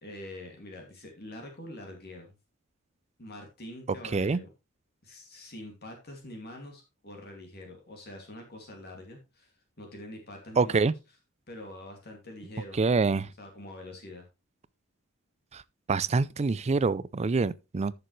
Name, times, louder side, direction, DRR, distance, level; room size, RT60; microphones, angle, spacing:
voice 1, 0.0-2.3 3.2-4.5 5.0-10.9 11.5-12.8 13.4-14.3, left 1 dB, 45° left, 2.5 m, -45 dB
voice 2, 10.6-10.9 12.8-13.3 15.5-15.6 15.9-17.9, right 4 dB, 30° right, 0.4 m, -25 dB
13.0 x 6.8 x 3.2 m
head